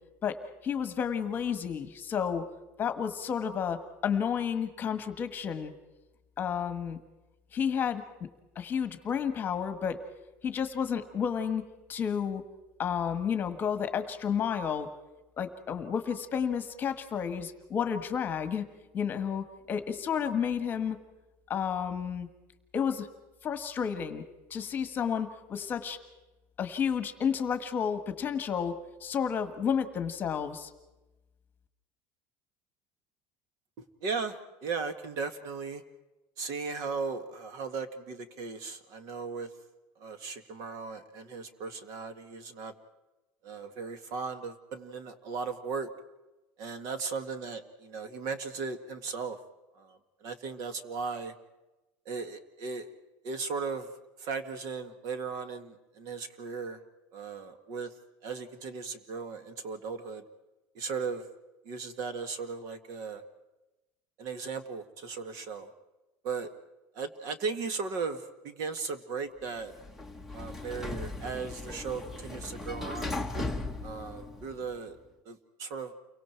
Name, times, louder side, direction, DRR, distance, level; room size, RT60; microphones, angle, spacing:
voice 1, 0.2-2.4 2.8-5.7 6.4-7.0 7.5-8.0 8.5-10.0 10.4-11.6 11.9-12.4 12.8-14.9 15.4-18.7 18.9-21.0 21.5-22.3 22.7-23.1 23.4-24.2 24.5-26.0 26.6-28.7 29.0-30.7, left 7 dB, 25° left, 9 dB, 1.5 m, -31 dB
voice 2, 33.8-35.8 36.4-39.5 40.0-42.7 43.4-45.9 46.6-49.4 49.7-51.3 52.1-52.9 53.2-53.9 54.2-56.8 57.1-57.9 58.2-60.2 60.7-61.3 61.6-63.2 64.2-65.7 66.2-66.5 66.9-69.7 70.3-73.2 73.8-75.0 75.3-75.9, right 5 dB, 45° right, 9 dB, 2.0 m, -37 dB
Sliding door, 69.6-74.8, left 2 dB, 5° right, 1.2 m, -37 dB
29.5 x 24.0 x 4.6 m, 1.0 s
cardioid pair, 175°, 8 cm